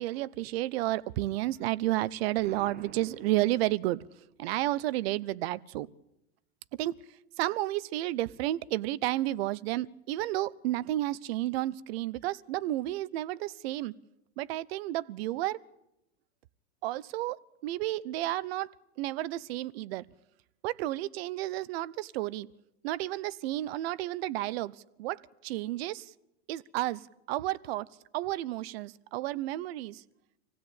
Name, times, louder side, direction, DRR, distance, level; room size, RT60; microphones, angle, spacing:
voice 1, 0.0-4.0 4.4-5.9 6.8-6.9 7.4-13.9 14.4-15.6 16.8-18.7 19.0-20.0 20.6-22.5 22.8-26.1 26.5-27.9 28.1-30.0, right 15 dB, 60° right, 19 dB, 0.9 m, -32 dB
Explosion, 2.4-4.2, right 8 dB, 25° right, 1.4 m, -50 dB
26.0 x 16.5 x 8.9 m, 0.88 s
supercardioid pair, 135°, 35 cm